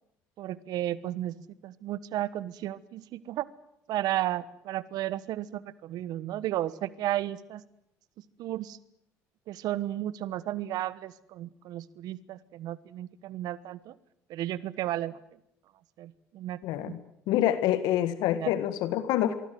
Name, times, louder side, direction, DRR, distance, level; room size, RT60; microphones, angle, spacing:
voice 1, 0.4-3.5 3.9-7.6 8.4-8.8 9.5-14.0 14.3-15.2 16.0-16.9 18.3-18.5, right 13 dB, 65° right, 17 dB, 1.2 m, -33 dB
voice 2, 16.6-17.0 17.3-19.3, left 12 dB, 75° left, 12 dB, 1.7 m, -26 dB
24.5 x 23.5 x 7.8 m, 0.79 s
hypercardioid pair, 60°, 7 cm